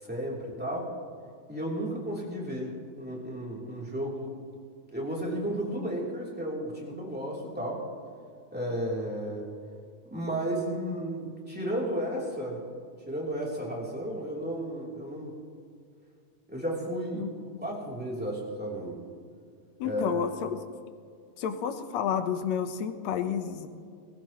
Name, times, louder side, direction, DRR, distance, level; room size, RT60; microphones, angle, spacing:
voice 1, 0.0-0.9 1.5-2.7 3.0-4.3 4.9-7.8 8.5-9.5 10.1-12.6 13.1-15.3 16.5-17.2 17.6-19.0 19.8-20.2, right 1 dB, 5° right, -4 dB, 2.8 m, -33 dB
voice 2, 17.1-17.7 19.8-20.6 21.4-23.7, left 8 dB, 75° left, 8 dB, 2.0 m, -31 dB
20.5 x 15.5 x 3.1 m, 2.3 s
omnidirectional pair, 3.3 m